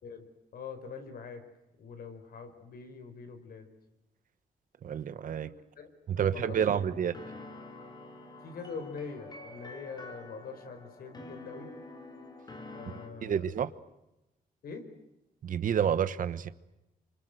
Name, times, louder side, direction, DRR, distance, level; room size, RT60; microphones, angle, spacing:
voice 1, 0.0-1.4 1.8-3.7 5.4-5.5 5.8-5.9 6.2-6.8 8.4-11.7 12.7-13.5 14.6-14.8, left 5 dB, 75° left, 8 dB, 4.7 m, -43 dB
voice 2, 4.8-5.5 6.1-7.2 13.2-13.7 15.4-16.5, right 8 dB, 60° right, 13 dB, 1.2 m, -29 dB
sound 1, 6.4-13.1, left 2 dB, 25° left, 3.7 m, -47 dB
28.5 x 25.5 x 7.9 m, 0.94 s
wide cardioid pair, 170°, 16 cm